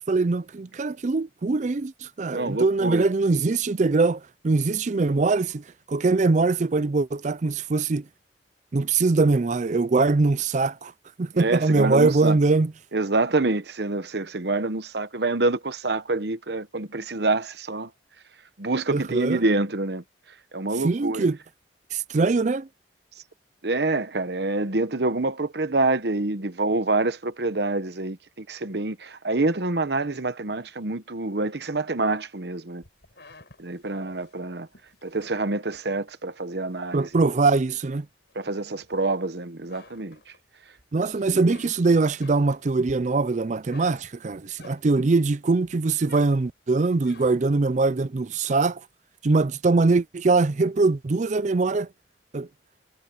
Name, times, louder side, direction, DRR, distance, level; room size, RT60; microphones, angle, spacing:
voice 1, 0.1-1.9 2.2-5.6 5.9-8.0 8.7-10.9 11.2-12.7 18.9-19.4 20.8-21.4 21.9-22.7 36.9-38.1 40.9-48.8 49.2-51.9 52.3-52.5, right 3 dB, 40° right, 0.4 m, -22 dB
voice 2, 2.3-3.1 11.3-12.4 12.9-17.9 18.6-20.0 20.5-21.2 23.6-32.8 33.6-34.7 35.0-37.2 38.3-40.3 41.3-41.6, right 2 dB, 65° right, 1.1 m, -26 dB
sound 1, 32.8-36.2 36.7-37.8 38.3-39.3 39.6-40.8 41.2-45.2 45.6-47.6, left 3 dB, 65° left, 5.4 m, -52 dB
head